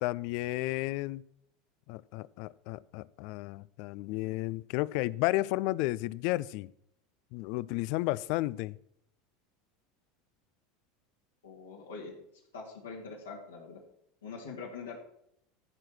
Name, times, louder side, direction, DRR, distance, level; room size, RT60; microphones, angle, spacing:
voice 1, 0.0-1.2 1.9-6.7 7.3-8.8, left 19 dB, 60° left, 0.4 m, -32 dB
voice 2, 11.4-12.1 12.5-13.8 14.2-15.0, left 4 dB, 85° left, 2.2 m, -43 dB
14.0 x 4.9 x 6.2 m
hypercardioid pair, 80°, 0 cm